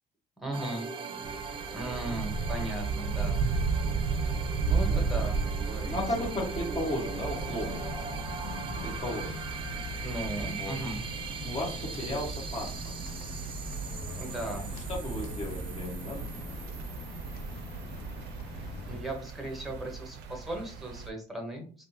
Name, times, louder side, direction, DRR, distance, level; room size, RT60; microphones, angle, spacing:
voice 1, 0.4-0.9 1.7-3.4 4.2-6.3 10.0-11.0 14.2-14.6 18.5-21.9, right 1 dB, ahead, 2 dB, 1.0 m, -37 dB
sound 1, 0.5-19.0, right 5 dB, 30° right, 0.5 m, -41 dB
sound 2, 1.2-21.1, right 4 dB, 85° right, 0.5 m, -35 dB
voice 2, 4.8-5.2 5.9-7.9 8.8-9.4 10.6-10.8 11.4-12.8 14.4-16.9, left 1 dB, 35° left, -1 dB, 1.4 m, -35 dB
sound 3, 7.3-19.0, left 2 dB, 65° left, 0.6 m, -41 dB
3.3 x 2.1 x 2.8 m, 0.41 s
cardioid pair, 110°, 17 cm